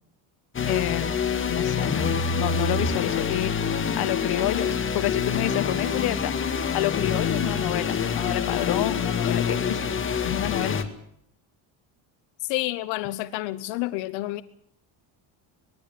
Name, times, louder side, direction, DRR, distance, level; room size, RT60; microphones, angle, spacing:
sound 1, 0.5-10.8, left 6 dB, 25° left, 2.0 m, -26 dB
voice 1, 0.7-3.5 3.9-6.3 6.7-9.8 10.2-10.8, left 14 dB, 55° left, 1.3 m, -29 dB
voice 2, 12.4-14.4, left 18 dB, 80° left, 1.0 m, -29 dB
21.0 x 15.0 x 9.4 m
cardioid pair, 140°, 44 cm